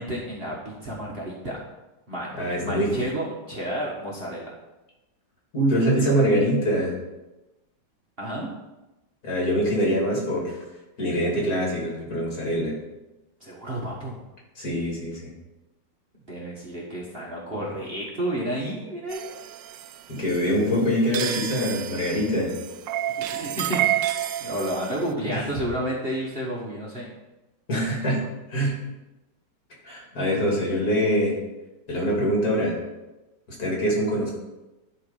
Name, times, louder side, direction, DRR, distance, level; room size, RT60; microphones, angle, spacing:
voice 1, 0.0-1.6 2.1-4.5 8.2-8.5 13.4-14.2 16.3-19.4 23.2-27.1, right 1 dB, 35° right, -4 dB, 1.5 m, -31 dB
voice 2, 2.3-2.9 5.5-6.9 9.2-10.6 11.0-12.7 14.6-15.3 20.1-22.5 25.3-25.4 27.7-28.2 28.5-28.7 29.8-31.3 31.9-32.7 33.6-34.3, equal, 50° left, -4 dB, 3.1 m, -24 dB
sound 1, 19.1-25.1, right 12 dB, 80° right, 1.2 m, -30 dB
11.5 x 4.3 x 5.3 m, 1.0 s
omnidirectional pair, 2.0 m